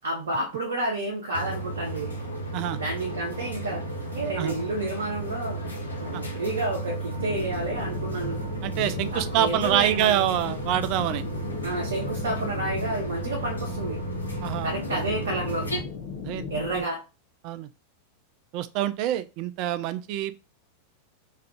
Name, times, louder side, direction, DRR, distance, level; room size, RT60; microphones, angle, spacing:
voice 1, 0.0-2.1 2.7-3.8 4.1-5.6 6.0-8.4 9.1-10.2 11.6-14.0 14.6-15.7 16.5-17.0, right 2 dB, 65° right, 0.7 m, -30 dB
sound 1, 1.3-15.8, right 2 dB, 80° left, 0.8 m, -33 dB
sound 2, 7.1-16.9, left 6 dB, 45° left, 0.6 m, -37 dB
voice 2, 8.6-11.2 14.4-15.0 16.2-16.5 16.7-16.9 17.4-17.7 18.5-20.3, right 12 dB, 45° right, 0.3 m, -26 dB
2.5 x 2.3 x 3.5 m
figure-of-eight pair, 90°, 0 cm